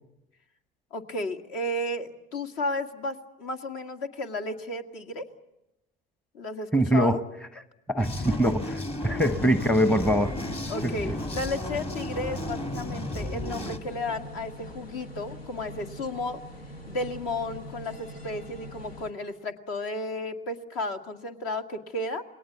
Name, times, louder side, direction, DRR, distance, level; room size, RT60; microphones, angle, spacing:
voice 1, 0.9-5.2 6.3-7.2 8.2-8.7 9.1-9.3 10.7-16.4 16.9-22.2, left 2 dB, 60° left, 6 dB, 2.1 m, -33 dB
voice 2, 6.7-7.2 7.9-8.7 9.0-10.4 10.8-10.9, right 1 dB, 5° left, 12 dB, 1.0 m, -23 dB
sound 1, 8.0-13.8, left 1 dB, 20° left, 1.8 m, -34 dB
sound 2, 9.3-19.1, equal, 90° left, 1.6 m, -43 dB
28.0 x 21.0 x 8.3 m, 0.92 s
hypercardioid pair, 75°, 29 cm